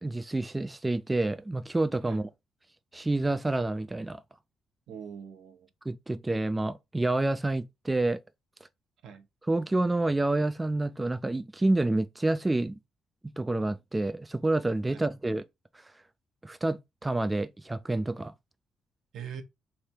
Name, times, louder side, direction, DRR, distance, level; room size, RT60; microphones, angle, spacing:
voice 1, 0.0-2.2 2.9-4.2 5.9-8.2 9.5-12.8 13.4-15.4 16.4-18.3, right 2 dB, 15° right, 0.4 m, -28 dB
voice 2, 4.9-5.7 9.0-9.3 14.9-15.0 19.1-19.4, right 7 dB, 75° right, 0.9 m, -42 dB
3.3 x 3.3 x 4.4 m
cardioid pair, 90°, 0 cm